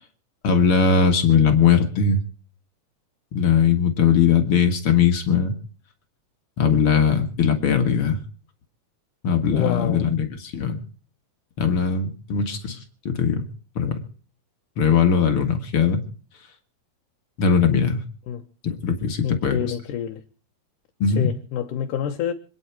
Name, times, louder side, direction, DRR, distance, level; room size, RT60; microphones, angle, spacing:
voice 1, 0.4-2.2 3.3-5.5 6.6-8.2 9.2-10.8 11.6-12.8 13.1-13.5 13.8-14.0 14.8-16.0 17.4-18.0 18.6-19.6 21.0-21.3, left 6 dB, 45° left, 2.2 m, -20 dB
voice 2, 9.5-10.1 18.3-18.4 19.2-20.2 21.1-22.3, left 9 dB, 70° left, 2.6 m, -28 dB
27.0 x 9.8 x 4.5 m
omnidirectional pair, 4.0 m